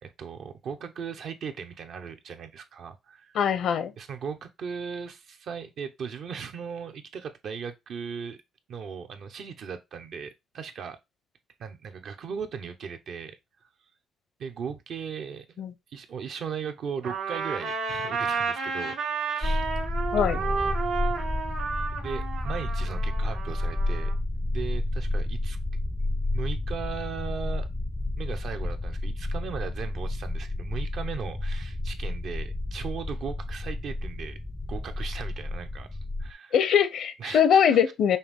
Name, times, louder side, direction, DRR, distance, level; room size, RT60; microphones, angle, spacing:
voice 1, 0.0-3.4 4.0-8.4 8.7-11.0 11.6-13.4 14.4-19.7 20.2-20.7 22.0-24.1 24.5-25.6 26.3-27.7 28.2-34.4 34.7-35.9 36.2-36.6 37.2-37.8, right 6 dB, 65° right, 0.8 m, -37 dB
voice 2, 3.3-3.9 15.6-15.7 20.1-20.4 36.5-38.2, left 8 dB, 70° left, 0.7 m, -22 dB
Trumpet, 17.0-24.1, right 5 dB, 90° right, 1.5 m, -32 dB
sound 1, 19.4-36.3, left 2 dB, 10° left, 0.4 m, -31 dB
5.5 x 2.7 x 3.5 m
cardioid pair, 90°, 0 cm